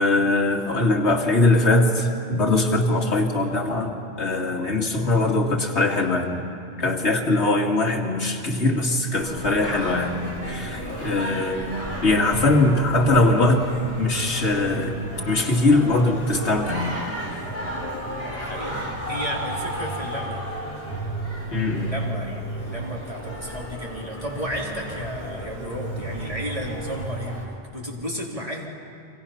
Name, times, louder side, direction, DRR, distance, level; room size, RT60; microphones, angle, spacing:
voice 1, 0.0-6.4 6.8-11.8 12.0-13.7 14.0-15.0 15.3-17.0 21.5-21.9, left 2 dB, 70° left, 1 dB, 2.4 m, -21 dB
Singing, 9.2-27.4, right 1 dB, 10° left, 4.7 m, -33 dB
voice 2, 18.3-20.5 21.7-28.7, equal, 30° right, -3 dB, 3.6 m, -33 dB
29.5 x 25.0 x 5.8 m, 2.6 s
omnidirectional pair, 1.2 m